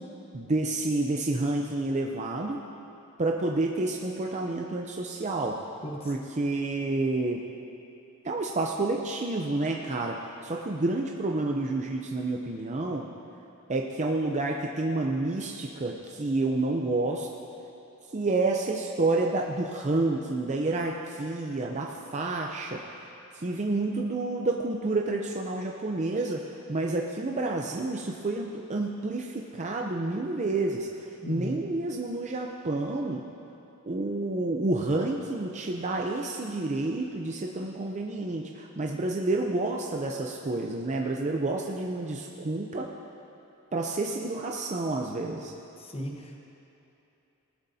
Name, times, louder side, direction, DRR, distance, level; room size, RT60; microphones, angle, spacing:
voice 1, 0.3-2.6 3.2-5.6 6.0-7.4 8.2-13.1 13.7-17.3 18.1-23.0 23.3-26.4 26.7-33.2 33.8-42.9 43.7-45.5, right 2 dB, 30° right, 0 dB, 0.6 m, -29 dB
voice 2, 5.8-6.2 31.2-31.6 45.8-46.4, equal, 25° left, 1 dB, 1.2 m, -36 dB
19.0 x 11.5 x 2.8 m, 2.9 s
head